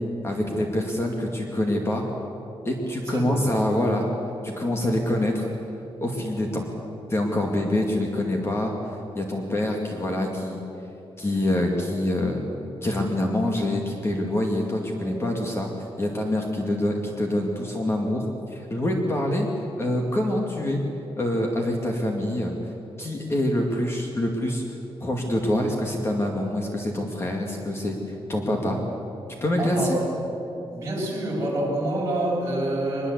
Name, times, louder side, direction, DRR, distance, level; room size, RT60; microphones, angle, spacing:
voice 1, 0.2-2.1 2.6-4.1 4.4-5.5 6.0-6.6 7.1-10.6 11.2-12.4 12.8-15.7 16.0-19.5 19.8-20.8 21.2-22.5 23.0-24.6 25.0-28.8 29.4-30.0, left 1 dB, 25° left, 1 dB, 2.3 m, -25 dB
voice 2, 3.1-3.5 15.0-15.3 29.6-30.0 30.7-33.1, right 1 dB, 30° right, -3 dB, 7.1 m, -27 dB
23.5 x 21.5 x 8.3 m, 2.9 s
wide cardioid pair, 170°, 10 cm